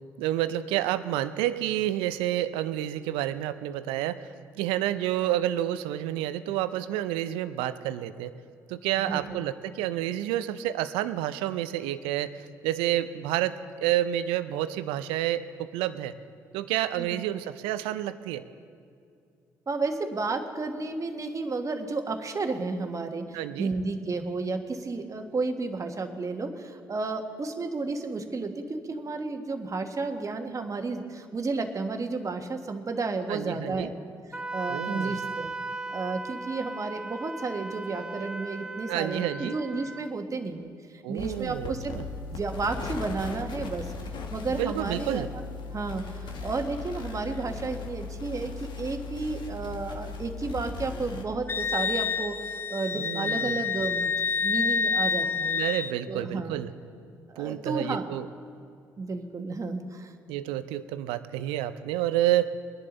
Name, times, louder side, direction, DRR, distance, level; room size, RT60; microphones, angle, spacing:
voice 1, 0.2-8.3 8.7-16.1 16.5-18.4 23.3-23.7 33.3-33.9 34.7-35.2 38.9-39.6 41.0-42.1 44.5-45.3 52.9-53.6 55.5-56.7 57.4-58.3 60.3-62.5, right 13 dB, 75° right, 13 dB, 0.6 m, -29 dB
voice 2, 9.0-9.4 17.0-17.2 19.7-34.0 34.3-35.5 35.9-41.9 42.3-43.9 44.3-45.4 45.7-54.1 54.4-55.6 56.1-56.6 57.3-58.1 59.0-60.1, right 3 dB, 35° right, 5 dB, 1.5 m, -32 dB
Wind instrument woodwind instrument, 34.3-40.1, right 2 dB, 10° right, 0.7 m, -37 dB
sound 1, 41.2-51.2, left 4 dB, 55° left, 1.4 m, -38 dB
Wind instrument woodwind instrument 2, 51.5-56.0, left 5 dB, 25° left, 0.6 m, -28 dB
21.5 x 11.0 x 3.9 m, 2.4 s
hypercardioid pair, 45°, 9 cm